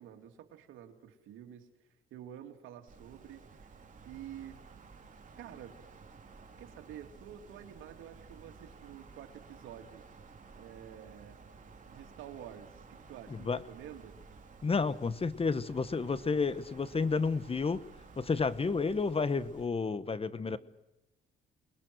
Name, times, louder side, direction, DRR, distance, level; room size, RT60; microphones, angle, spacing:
voice 1, 0.0-4.6 5.4-5.8 6.6-10.0 10.6-11.4 11.8-14.1 20.5-20.6, right 10 dB, 90° right, 4 dB, 2.8 m, -49 dB
Wind, 2.9-19.6, right 4 dB, 40° right, 3.5 m, -54 dB
voice 2, 14.6-17.8 18.2-20.6, left 4 dB, 30° left, 15 dB, 1.2 m, -31 dB
28.5 x 21.5 x 6.3 m, 0.94 s
cardioid pair, 90°, 20 cm